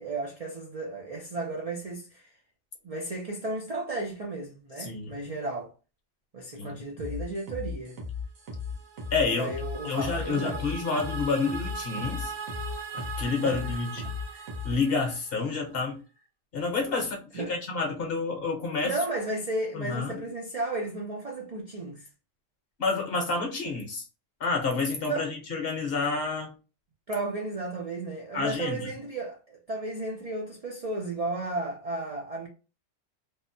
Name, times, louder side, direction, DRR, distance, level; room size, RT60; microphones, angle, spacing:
voice 1, 0.0-2.3 2.8-5.7 6.3-8.0 9.3-10.6 13.4-13.6 17.3-17.5 18.8-22.1 25.1-25.3 27.1-32.5, right 2 dB, 50° right, 0.4 m, -34 dB
voice 2, 4.8-5.2 6.6-6.8 9.1-9.5 9.8-12.3 12.9-14.1 14.6-16.0 16.5-18.9 19.7-20.2 22.8-24.0 24.4-26.5 28.3-28.9, left 4 dB, 55° left, 0.9 m, -29 dB
sound 1, 7.0-14.8, left 5 dB, 90° right, 1.4 m, -37 dB
sound 2, 8.5-15.7, right 5 dB, 70° right, 1.0 m, -40 dB
3.5 x 2.1 x 2.6 m
omnidirectional pair, 1.4 m